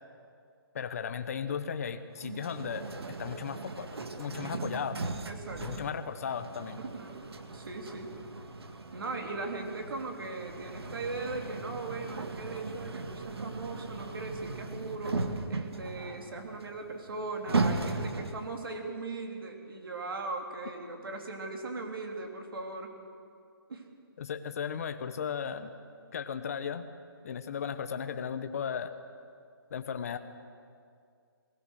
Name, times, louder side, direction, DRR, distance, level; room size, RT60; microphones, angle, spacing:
voice 1, 0.7-2.8 3.2-3.9 4.2-5.0 5.6-6.8 24.2-25.7 26.1-26.9 27.2-28.9 29.7-30.2, left 7 dB, 40° left, 9 dB, 1.1 m, -35 dB
sound 1, 2.2-18.6, right 3 dB, 85° right, 1.7 m, -37 dB
voice 2, 5.2-5.9 6.8-8.2 8.9-15.2 15.5-23.0 23.7-23.9, right 3 dB, 65° right, 3 dB, 3.4 m, -39 dB
22.0 x 19.0 x 6.5 m, 2.3 s
hypercardioid pair, 170°, 13 cm